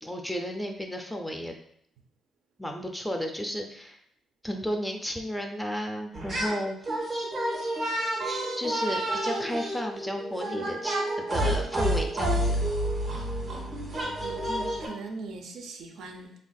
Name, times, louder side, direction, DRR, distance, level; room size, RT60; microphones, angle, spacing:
voice 1, 0.0-1.5 2.6-4.0 4.4-6.9 8.2-12.7, equal, ahead, 3 dB, 0.4 m, -33 dB
sound 1, 6.1-6.6 6.8-14.9, right 1 dB, 45° right, 0.9 m, -29 dB
voice 2, 13.4-16.3, right 3 dB, 75° right, 4 dB, 0.5 m, -41 dB
3.3 x 2.5 x 2.2 m, 0.69 s
cardioid pair, 80°, 0 cm